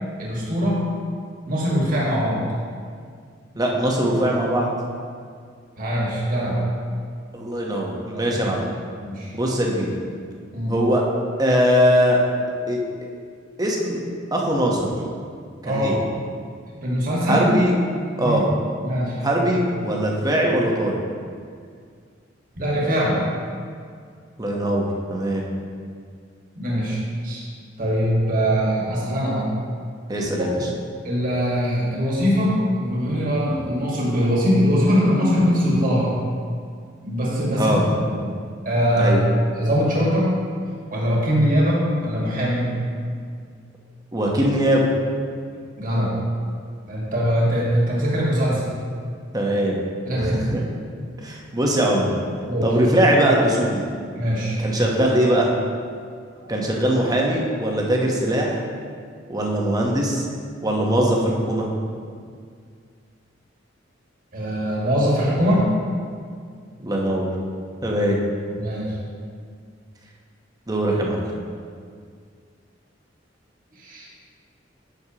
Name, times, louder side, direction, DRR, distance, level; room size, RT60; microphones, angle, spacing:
voice 1, 0.2-0.8 1.4-2.4 5.8-6.6 8.1-8.3 9.0-9.3 10.5-10.8 15.6-16.0 16.8-17.4 18.2-18.4 18.8-19.2 22.5-23.2 26.5-27.5 27.8-29.5 30.4-30.7 31.0-36.1 37.0-38.2 38.6-39.1 39.5-40.3 40.9-42.7 45.8-46.1 46.9-48.6 50.0-50.5 52.4-52.7 54.1-54.6 56.4-56.5 64.3-65.7 68.5-69.0 73.8-74.1, equal, 45° right, -5 dB, 1.7 m, -22 dB
voice 2, 3.6-4.7 7.3-8.6 9.3-9.9 10.7-11.0 11.4-12.2 12.7-12.8 13.6-14.0 14.3-14.9 15.6-16.0 17.2-17.7 18.2-18.5 19.2-21.0 24.4-25.4 30.1-30.6 37.5-37.8 39.0-39.2 44.1-44.9 49.3-49.8 50.2-50.3 50.5-50.6 51.2-52.1 52.6-53.9 54.6-55.5 56.5-58.6 59.3-60.3 60.6-61.7 66.8-67.3 67.8-68.2 70.7-71.2, equal, 20° right, -2 dB, 1.0 m, -21 dB
9.5 x 6.3 x 2.9 m, 2.1 s
head